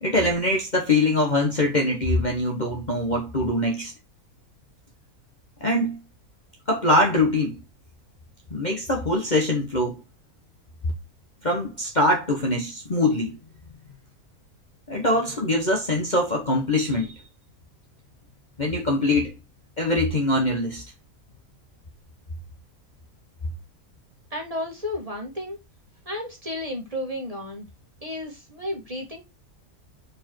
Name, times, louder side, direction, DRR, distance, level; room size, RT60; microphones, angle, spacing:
voice 1, 0.0-3.9 5.6-6.0 6.7-7.6 8.5-10.0 11.4-13.4 14.9-17.1 18.6-19.4 19.8-20.8, left 1 dB, 35° left, 1.1 m, -23 dB
voice 2, 24.3-25.6 26.0-27.6 28.0-29.2, left 1 dB, 25° right, 1.8 m, -32 dB
5.1 x 4.8 x 4.4 m
omnidirectional pair, 1.6 m